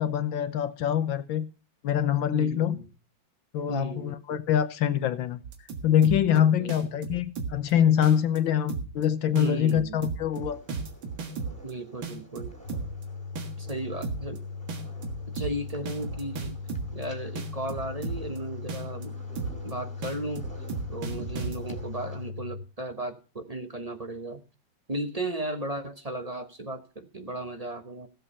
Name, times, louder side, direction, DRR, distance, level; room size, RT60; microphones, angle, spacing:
voice 1, 0.0-1.5 1.8-2.8 3.5-5.4 5.8-10.6, left 9 dB, 70° left, 1.6 m, -24 dB
voice 2, 2.3-2.9 3.7-4.1 6.3-6.9 9.4-10.0 11.6-12.5 13.6-14.4 15.3-16.6 16.9-19.2 19.6-20.5 20.9-24.4 24.9-28.1, right 1 dB, 25° right, 0.8 m, -35 dB
sound 1, 5.4-6.4 6.7-7.7 8.0-8.4 8.7-9.0 9.4-11.7 12.0-13.0 13.4-13.7 14.0-14.4 14.7-17.0 17.4-18.4 18.7-19.0 19.4-19.7 20.0-21.8, right 5 dB, 70° right, 2.5 m, -34 dB
sound 2, 10.3-22.3, right 1 dB, 5° left, 2.9 m, -52 dB
sound 3, 12.6-22.6, left 5 dB, 50° left, 1.8 m, -39 dB
16.0 x 8.0 x 5.5 m
omnidirectional pair, 2.2 m